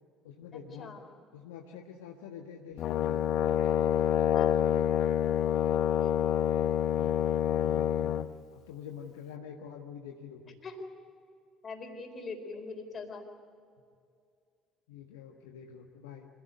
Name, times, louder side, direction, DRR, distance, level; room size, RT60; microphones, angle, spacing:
voice 1, 0.2-0.9 1.3-3.3 6.8-8.2 8.5-10.6 13.8-13.9 14.9-16.3, left 8 dB, 70° left, 2 dB, 1.4 m, -46 dB
Brass instrument, 2.8-8.3, left 10 dB, 55° left, 0.8 m, -27 dB
voice 2, 4.3-4.9 6.0-6.4 10.6-10.7 11.6-13.2, left 4 dB, 35° left, 4 dB, 4.3 m, -43 dB
26.0 x 17.5 x 8.1 m, 2.3 s
figure-of-eight pair, 55°, 0 cm